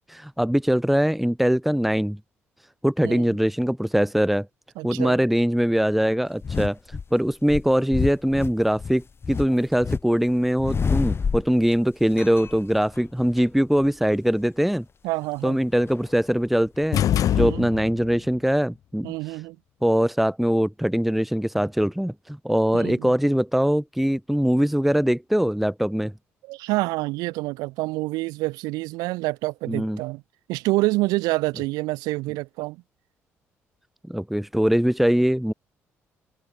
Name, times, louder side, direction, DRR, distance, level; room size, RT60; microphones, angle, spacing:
voice 1, 0.1-2.2 2.8-4.5 4.8-6.8 7.1-14.8 15.4-17.0 17.4-19.1 19.8-26.1 29.7-30.0 34.1-35.5, equal, ahead, 1.1 m, -22 dB
voice 2, 4.8-5.2 15.0-15.6 17.3-17.7 19.0-19.6 22.7-23.1 26.5-30.2 30.5-32.8, right 22 dB, 65° right, 3.0 m, -27 dB
sound 1, 6.4-7.0 7.5-10.0 10.3-11.8 12.1-13.4 13.8-14.0 15.7-17.0 17.4-17.5, left 5 dB, 35° left, 4.4 m, -28 dB
sound 2, 16.9-18.2, left 11 dB, 55° left, 3.1 m, -23 dB
figure-of-eight pair, 45°, 7 cm